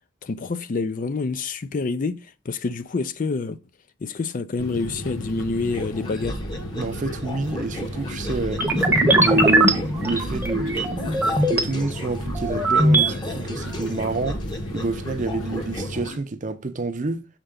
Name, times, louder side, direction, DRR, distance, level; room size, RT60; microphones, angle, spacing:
voice 1, 0.2-3.6 4.0-6.4, left 3 dB, 40° left, 0.4 m, -27 dB
sound 1, 4.6-16.1, left 1 dB, 85° left, 1.1 m, -34 dB
sound 2, 5.7-16.2, left 1 dB, 25° left, 0.9 m, -35 dB
voice 2, 6.8-8.6 9.1-11.0 11.5-14.5 14.7-17.3, right 2 dB, 40° right, 0.6 m, -28 dB
sound 3, 8.6-11.6 12.1-13.1, right 1 dB, 10° right, 0.9 m, -20 dB
6.6 x 4.5 x 3.7 m
head